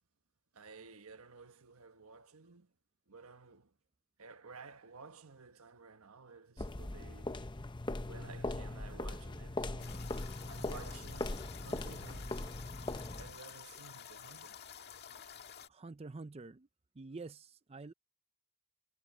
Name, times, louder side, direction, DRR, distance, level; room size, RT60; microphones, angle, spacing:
voice 1, 0.5-2.7 3.1-3.7 4.2-7.4 8.0-10.0 10.5-12.5 13.2-14.6, right 4 dB, 80° right, 1.3 m, -54 dB
sound 1, 6.6-13.4, left 2 dB, 20° left, 0.7 m, -40 dB
sound 2, 9.8-15.7, left 8 dB, 45° left, 2.0 m, -51 dB
voice 2, 15.7-16.7 17.0-17.9, right 3 dB, 25° right, 0.5 m, -47 dB
head